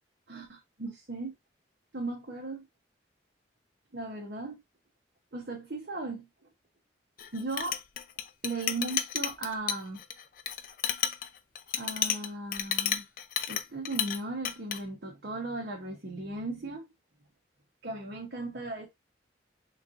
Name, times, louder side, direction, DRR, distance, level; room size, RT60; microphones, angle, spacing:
voice 1, 0.3-1.3 1.9-2.7 3.9-4.6 5.3-6.5 7.3-7.8 8.4-10.0 11.7-13.1 13.5-16.9 17.8-18.9, right 2 dB, 60° right, 0.9 m, -37 dB
Chink clink, 7.2-14.2 14.4-14.8, left 9 dB, 50° left, 0.4 m, -32 dB
3.9 x 3.2 x 2.5 m
head